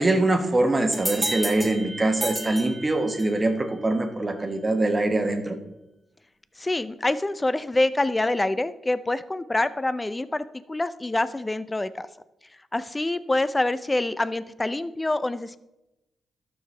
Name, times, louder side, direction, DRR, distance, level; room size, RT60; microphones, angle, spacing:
voice 1, 0.0-5.6, right 2 dB, 25° right, 5 dB, 1.2 m, -23 dB
sound 1, 0.9-3.5, right 1 dB, 10° right, 1.8 m, -32 dB
voice 2, 6.6-12.1 12.7-15.6, left 2 dB, 20° left, 15 dB, 0.5 m, -26 dB
12.0 x 6.9 x 3.3 m, 0.94 s
cardioid pair, 85°, 0 cm